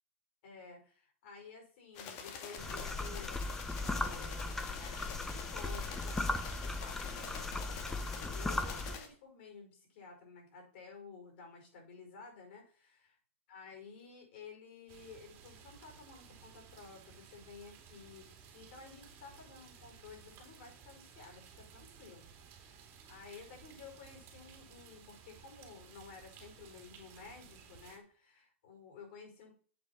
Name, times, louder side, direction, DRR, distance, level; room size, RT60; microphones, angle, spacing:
voice 1, 0.4-3.4 3.8-13.1 13.5-29.5, left 5 dB, 60° left, 3 dB, 5.4 m, -53 dB
sound 1, 1.9-9.1, left 6 dB, 45° left, 2.0 m, -46 dB
sound 2, 2.6-9.0, left 2 dB, 5° left, 0.6 m, -38 dB
sound 3, 14.9-28.0, right 7 dB, 35° right, 2.6 m, -57 dB
8.1 x 6.9 x 5.9 m, 0.43 s
supercardioid pair, 145°, 7 cm